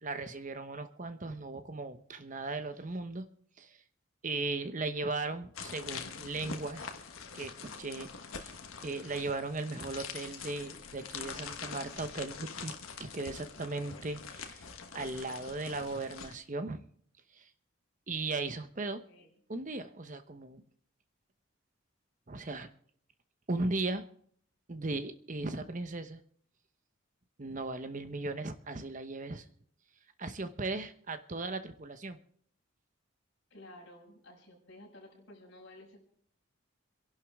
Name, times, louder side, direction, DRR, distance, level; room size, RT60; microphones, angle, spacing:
voice 1, 0.0-3.3 3.6-3.8 4.2-6.9 7.3-7.5 7.8-8.6 8.8-12.7 13.0-14.6 14.9-16.9 17.3-17.5 18.1-19.0 19.5-20.6 22.3-22.7 23.5-24.0 24.7-26.2 27.4-29.4 30.2-32.2, right 3 dB, 35° right, 9 dB, 1.0 m, -37 dB
sound 1, 5.5-16.3, left 5 dB, 80° left, 1.4 m, -44 dB
voice 2, 18.7-19.3 33.5-36.0, left 1 dB, 55° left, -2 dB, 5.8 m, -53 dB
26.5 x 11.5 x 3.6 m, 0.62 s
head